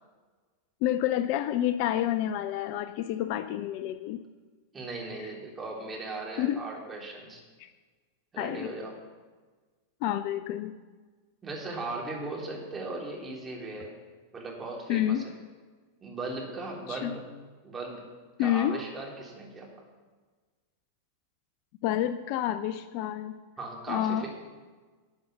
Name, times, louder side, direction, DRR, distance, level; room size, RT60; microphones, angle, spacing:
voice 1, 0.8-4.2 6.4-6.6 7.6-7.7 8.4-8.7 10.0-10.8 14.9-15.3 16.9-17.1 18.4-18.8 21.8-23.4 23.9-24.3, left 12 dB, 45° left, 12 dB, 0.4 m, -29 dB
voice 2, 4.7-7.4 8.3-8.9 11.4-13.9 14.3-15.2 16.0-17.2 17.6-18.0 18.4-19.7 23.6-24.3, right 2 dB, 15° right, -2 dB, 3.3 m, -37 dB
12.0 x 7.0 x 6.8 m, 1.4 s
figure-of-eight pair, 90°, 0 cm